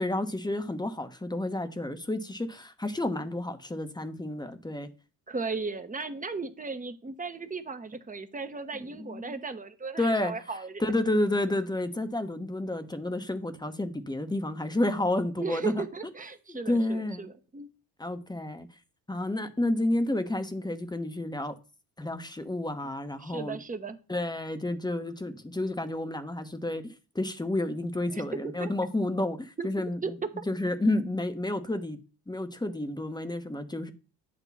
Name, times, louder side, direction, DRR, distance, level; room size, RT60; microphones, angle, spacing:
voice 1, 0.0-4.9 8.7-9.4 10.0-10.3 10.8-15.8 16.5-17.3 18.0-18.7 19.1-21.5 22.0-23.6 24.1-30.2 30.5-32.0 32.3-33.9, left 1 dB, 10° left, 1.1 m, -30 dB
voice 2, 5.3-10.8 15.4-17.7 23.2-24.0 28.1-28.2 28.6-28.7 29.6-29.7 30.0-30.1 30.4-30.5, right 4 dB, 15° right, 1.0 m, -36 dB
8.6 x 2.9 x 5.8 m
figure-of-eight pair, 55°, 49 cm